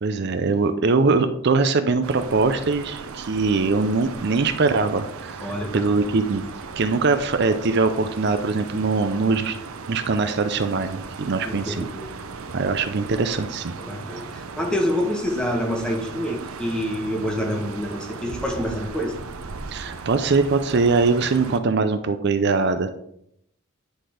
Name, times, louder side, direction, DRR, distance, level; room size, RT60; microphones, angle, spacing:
voice 1, 0.0-6.4 6.8-9.6 9.9-11.9 12.5-13.8 19.7-22.9, right 4 dB, 55° right, 9 dB, 0.5 m, -22 dB
sound 1, 2.0-21.6, right 4 dB, 90° right, 0.7 m, -37 dB
voice 2, 5.4-5.8 11.4-12.1 13.8-19.1, equal, 5° left, 0 dB, 1.4 m, -27 dB
10.0 x 4.1 x 5.0 m, 0.73 s
head